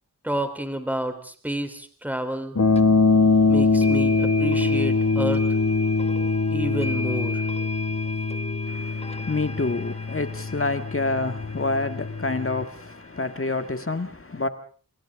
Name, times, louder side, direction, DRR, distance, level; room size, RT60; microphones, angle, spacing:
voice 1, 0.2-2.6 3.5-5.5 6.5-7.4, right 1 dB, 5° right, 3.4 m, -30 dB
sound 1, 2.6-12.7, left 3 dB, 55° left, 1.7 m, -23 dB
sound 2, 2.8-2.9 3.8-13.9, left 2 dB, 20° left, 1.6 m, -38 dB
voice 2, 8.6-14.5, left 3 dB, 40° left, 1.8 m, -28 dB
29.5 x 27.0 x 3.7 m
wide cardioid pair, 80°, 33 cm